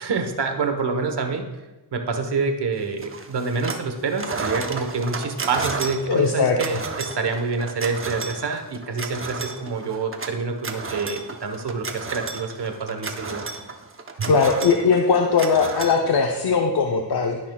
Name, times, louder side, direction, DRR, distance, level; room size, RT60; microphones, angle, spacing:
voice 1, 0.0-1.5 1.9-13.4 14.2-14.3, right 4 dB, 60° right, 6 dB, 1.2 m, -27 dB
sound 1, 3.0-3.9 4.1-16.5, right 4 dB, 30° right, 0.8 m, -33 dB
voice 2, 6.1-6.8 14.3-17.4, left 5 dB, 55° left, 1 dB, 0.8 m, -20 dB
16.0 x 5.8 x 2.3 m, 1.1 s
cardioid pair, 75°, 46 cm